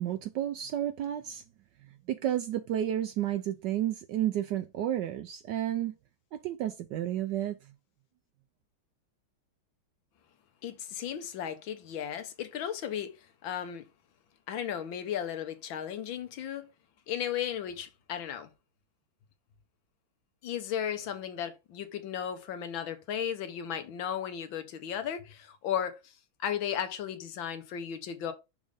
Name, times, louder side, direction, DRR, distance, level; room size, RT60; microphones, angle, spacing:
voice 1, 0.0-1.4 2.1-6.0 6.3-7.6, right 11 dB, 75° right, 1.0 m, -31 dB
voice 2, 10.6-13.9 14.5-16.7 17.1-18.5 20.4-26.1 26.4-28.3, left 9 dB, 70° left, 1.6 m, -35 dB
6.3 x 3.3 x 5.2 m
omnidirectional pair, 2.3 m